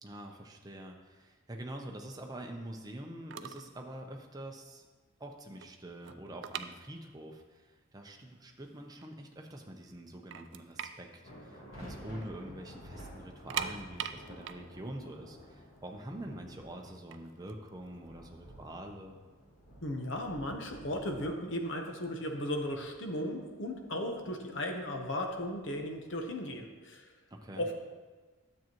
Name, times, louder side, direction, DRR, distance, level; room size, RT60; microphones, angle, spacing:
voice 1, 0.0-4.8 5.2-19.2 27.3-27.6, right 1 dB, 20° right, 2 dB, 0.7 m, -45 dB
sound 1, 3.0-3.1 3.3-3.8 4.0-4.3 4.8-4.9 5.1-7.4 7.7-7.8 8.4-8.5 8.9-9.6 9.9-10.0 10.3-12.3 12.6-12.7 13.3-16.2 16.9-18.6, right 9 dB, 60° right, 0.3 m, -41 dB
sound 2, 11.2-26.6, equal, 80° left, 3.0 m, -53 dB
voice 2, 19.8-27.1 27.6-27.7, left 1 dB, 60° left, 3 dB, 1.0 m, -36 dB
10.0 x 7.6 x 3.0 m, 1.3 s
head